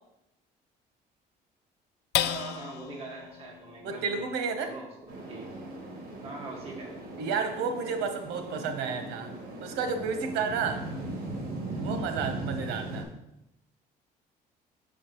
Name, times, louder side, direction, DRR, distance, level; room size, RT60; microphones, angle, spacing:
sound 1, 2.1-8.8 9.3-9.4 9.8-10.3, left 13 dB, 80° left, 0.4 m, -38 dB
voice 1, 2.2-4.4 4.6-4.9 5.2-5.5 6.2-6.9, right 3 dB, 35° right, -2 dB, 1.6 m, -42 dB
voice 2, 3.8-4.7 7.2-9.3 9.6-10.8 11.8-13.1, right 5 dB, 90° right, 6 dB, 1.0 m, -31 dB
sound 2, 5.1-13.0, right 2 dB, 60° right, 2.2 m, -38 dB
7.3 x 6.7 x 3.0 m, 0.87 s
cardioid pair, 110°, 17 cm